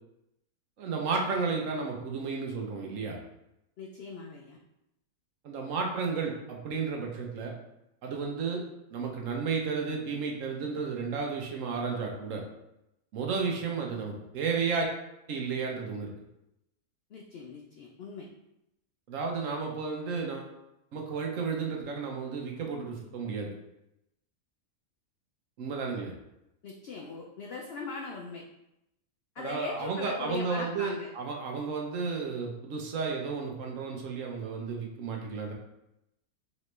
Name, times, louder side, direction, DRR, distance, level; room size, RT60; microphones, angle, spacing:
voice 1, 0.8-3.2 5.4-7.5 8.0-8.6 8.9-12.4 13.1-14.9 15.3-16.1 19.1-20.5 20.9-23.5 25.6-26.1 29.4-35.5, right 5 dB, 65° right, 1 dB, 1.0 m, -32 dB
voice 2, 3.8-4.6 17.1-18.3 26.6-28.4 29.3-31.1, left 4 dB, 90° left, 0 dB, 0.5 m, -40 dB
4.1 x 3.0 x 3.1 m, 0.86 s
omnidirectional pair, 1.6 m